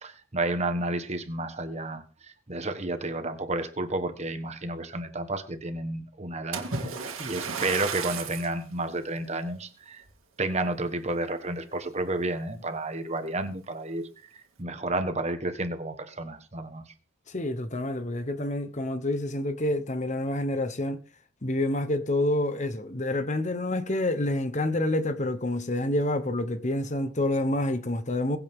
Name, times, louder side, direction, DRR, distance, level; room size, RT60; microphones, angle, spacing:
voice 1, 0.0-10.0 10.4-16.8, right 2 dB, 30° right, 1.4 m, -31 dB
Splash splatter, 6.5-8.6 9.2-9.4 10.0-10.1, right 5 dB, 75° right, 2.3 m, -33 dB
voice 2, 17.3-21.0 21.4-28.4, left 1 dB, 35° left, 1.0 m, -28 dB
22.0 x 8.4 x 3.7 m
head